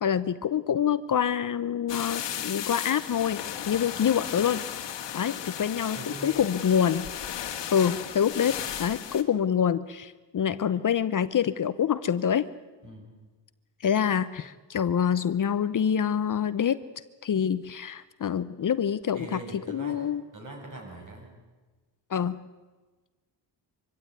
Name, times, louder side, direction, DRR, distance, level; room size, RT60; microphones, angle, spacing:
voice 1, 0.0-3.4 3.7-4.8 5.1-7.1 7.7-12.5 13.8-16.8 17.2-19.4 19.7-20.2 22.1-22.4, left 8 dB, 45° left, 14 dB, 0.8 m, -26 dB
sound 1, 1.9-9.2, left 10 dB, 80° left, 1.9 m, -35 dB
voice 2, 6.0-6.4 12.8-13.0 19.1-20.0 20.3-21.3, right 1 dB, 45° right, 1 dB, 7.2 m, -41 dB
24.0 x 16.0 x 9.6 m, 1.3 s
cardioid pair, 110°, 43 cm